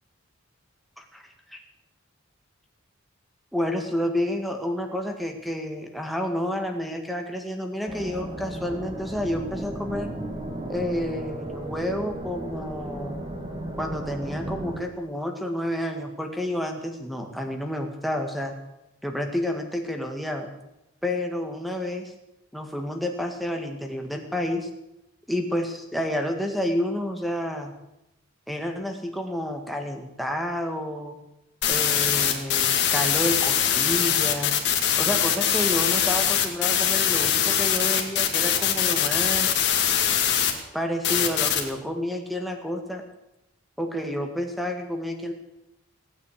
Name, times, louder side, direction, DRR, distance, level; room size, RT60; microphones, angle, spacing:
voice 1, 3.5-10.1 10.7-13.2 13.8-18.6 19.0-20.5 21.0-22.1 22.5-24.7 25.3-27.7 28.5-31.2 31.7-34.5 35.0-39.6 40.7-43.0 43.8-45.3, left 1 dB, ahead, 3 dB, 1.8 m, -29 dB
sound 1, 7.9-14.8, right 1 dB, 25° right, 2.3 m, -35 dB
sound 2, 31.6-40.5 41.0-41.6, left 9 dB, 55° left, 2.2 m, -22 dB
18.0 x 9.4 x 8.4 m, 0.90 s
head